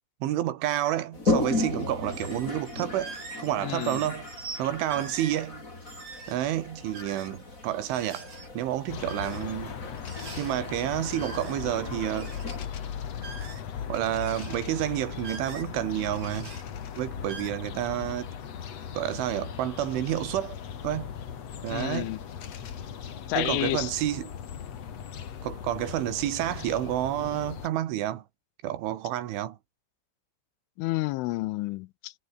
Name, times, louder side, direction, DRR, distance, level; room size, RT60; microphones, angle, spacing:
voice 1, 0.2-3.1 3.4-4.3 4.6-5.6 6.3-8.3 8.5-9.8 10.4-12.3 13.9-16.5 17.0-18.3 19.0-20.6 20.8-21.1 21.6-22.2 23.4-24.3 25.4-28.2 28.6-29.6, right 13 dB, 80° right, 4.2 m, -29 dB
Toilet flush, 1.1-12.6, left 2 dB, 15° left, 4.7 m, -35 dB
sound 1, 2.0-3.5 3.8-4.6 4.9-5.4 5.8-6.5 6.9-7.4 7.9-8.5 9.1-9.7 10.0-10.6 11.1-11.8 12.1-12.6 13.2-13.8 14.1-14.6 15.2-15.8 16.1-16.6 17.2-17.5, right 4 dB, 50° right, 8.7 m, -43 dB
voice 2, 3.6-4.0 21.7-22.2 23.3-23.9 30.8-32.1, left 20 dB, 85° left, 3.3 m, -30 dB
sound 2, 8.9-27.7, left 8 dB, 45° left, 2.3 m, -38 dB
omnidirectional pair, 5.5 m